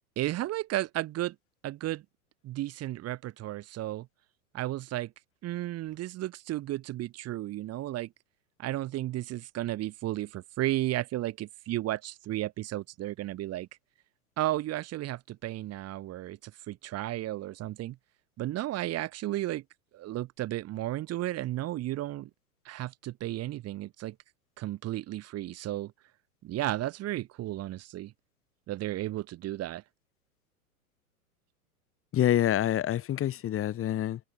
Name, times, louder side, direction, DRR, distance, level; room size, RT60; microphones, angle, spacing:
voice 1, 0.2-1.4 1.6-2.0 2.4-4.1 4.5-5.1 5.4-8.1 8.6-13.7 14.4-18.0 18.4-19.6 19.9-22.3 22.6-24.2 24.6-25.9 26.4-28.1 28.7-29.8, right 15 dB, 35° right, 3.8 m, -33 dB
voice 2, 32.1-34.2, left 11 dB, 30° left, 6.2 m, -27 dB
hypercardioid pair, 100°, 44 cm